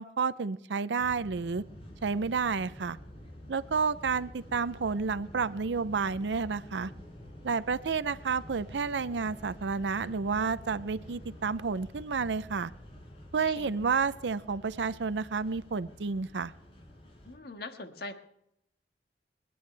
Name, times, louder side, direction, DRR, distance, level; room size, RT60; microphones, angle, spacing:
voice 1, 0.0-1.6 2.0-3.0 3.5-6.9 7.4-12.7 13.3-16.5, right 5 dB, 90° right, 14 dB, 0.6 m, -30 dB
sound 1, 1.0-17.3, equal, 35° left, 6.1 m, -49 dB
voice 2, 17.2-18.1, left 2 dB, 60° left, 5 dB, 1.6 m, -42 dB
30.0 x 10.0 x 3.3 m, 0.79 s
head